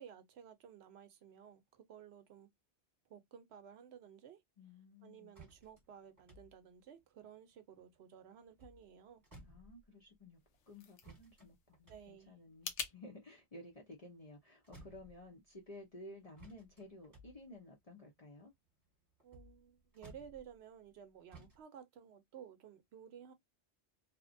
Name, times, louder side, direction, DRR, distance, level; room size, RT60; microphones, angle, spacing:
voice 1, 0.0-2.5 3.1-4.4 5.0-9.2 11.9-12.3 19.2-23.3, right 8 dB, 70° right, 0.8 m, -55 dB
voice 2, 4.6-5.3 9.4-10.4 10.7-18.5, left 1 dB, 40° left, 0.6 m, -54 dB
sound 1, 5.3-8.0 8.4-10.2 11.0-14.3 14.6-15.7 16.4-21.0 21.3-21.6, right 2 dB, 15° right, 1.2 m, -60 dB
sound 2, 10.3-13.0, left 7 dB, 85° left, 0.9 m, -47 dB
2.9 x 2.1 x 2.5 m
omnidirectional pair, 1.2 m